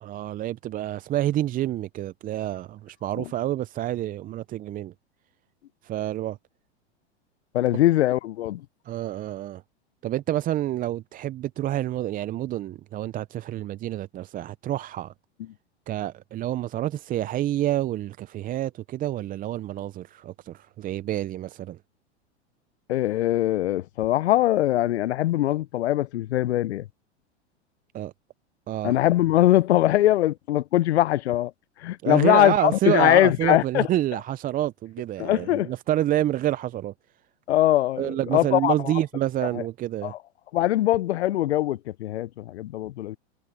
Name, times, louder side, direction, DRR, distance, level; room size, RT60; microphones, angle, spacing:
voice 1, 0.0-4.9 5.8-6.4 8.9-9.6 10.0-15.1 15.9-21.8 27.9-28.1 28.7-28.9 32.0-36.9 38.0-40.1, right 13 dB, 25° right, 0.6 m, -28 dB
voice 2, 7.5-8.6 22.9-26.9 28.8-31.5 31.8-33.9 35.2-35.7 37.5-38.9 39.5-39.6 40.0-40.2 40.5-43.2, left 14 dB, 75° left, 0.7 m, -22 dB
hypercardioid pair, 105°, 34 cm